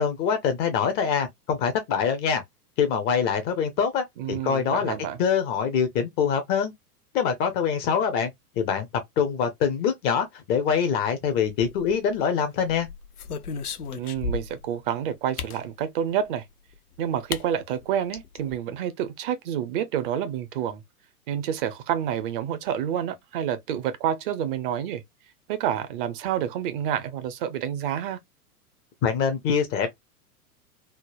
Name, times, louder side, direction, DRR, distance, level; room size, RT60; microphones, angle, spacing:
voice 1, 0.0-2.4 2.8-4.9 5.2-6.7 7.1-8.9 9.2-12.9 29.0-29.9, left 7 dB, 25° left, 0.4 m, -24 dB
voice 2, 4.2-5.2 13.9-16.4 17.0-20.8 21.3-25.0 25.5-28.2, right 9 dB, 35° right, 0.5 m, -28 dB
sound 1, 11.5-12.2 12.7-14.7 15.4-15.6 16.7-16.8 17.3-17.5 17.8-17.9 18.2-18.6, left 5 dB, 85° left, 0.6 m, -34 dB
3.3 x 2.0 x 2.3 m
figure-of-eight pair, 95°, 45 cm